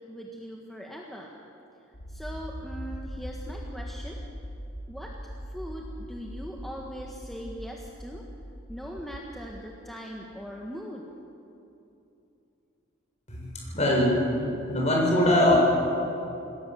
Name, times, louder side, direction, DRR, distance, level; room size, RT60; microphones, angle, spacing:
voice 1, 0.1-1.3 2.1-4.2 4.9-5.1 5.5-8.2 8.7-11.1, equal, ahead, -2 dB, 1.6 m, -40 dB
Accelerating revving vroom, 1.9-9.2, equal, 75° left, 3.7 m, -40 dB
voice 2, 13.3-14.2 14.7-15.6, left 1 dB, 35° left, -2 dB, 7.0 m, -22 dB
28.5 x 19.5 x 7.7 m, 2.8 s
head